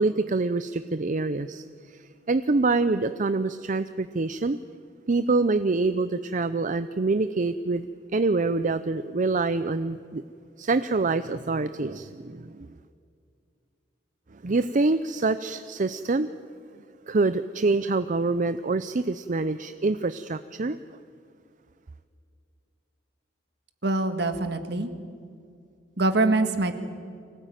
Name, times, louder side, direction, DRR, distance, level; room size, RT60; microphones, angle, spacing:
voice 1, 0.0-4.6 5.1-7.9 8.1-10.2 10.6-12.7 14.3-16.3 17.1-20.8, right 3 dB, 45° right, 12 dB, 0.5 m, -26 dB
voice 2, 23.8-24.9 26.0-26.8, right 2 dB, 60° right, 8 dB, 1.9 m, -24 dB
24.5 x 18.0 x 9.2 m, 2.3 s
head